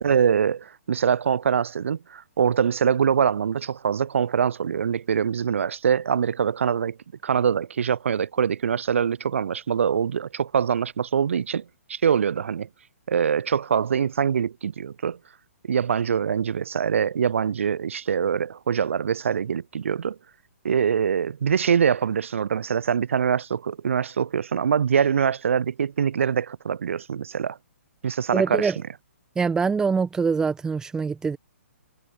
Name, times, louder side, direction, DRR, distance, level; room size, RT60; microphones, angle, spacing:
voice 1, 0.0-7.0 7.2-12.7 13.1-15.2 15.7-20.2 20.6-27.6 28.0-28.7, right 7 dB, 60° right, 0.4 m, -24 dB
voice 2, 28.3-28.8 29.3-31.4, right 5 dB, 10° right, 1.2 m, -24 dB
figure-of-eight pair, 130°, 8 cm